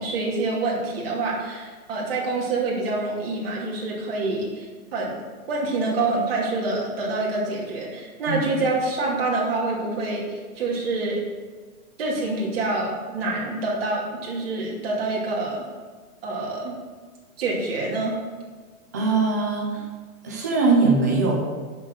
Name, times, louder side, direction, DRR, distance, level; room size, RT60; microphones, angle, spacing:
voice 1, 0.0-4.7 4.9-5.2 5.5-11.2 12.0-15.6 16.2-16.8 17.4-18.2, right 2 dB, 40° right, -3 dB, 2.7 m, -26 dB
voice 2, 18.9-19.8 20.2-21.4, right 3 dB, 10° right, -2 dB, 0.6 m, -21 dB
7.4 x 6.6 x 6.8 m, 1.4 s
hypercardioid pair, 170°, 44 cm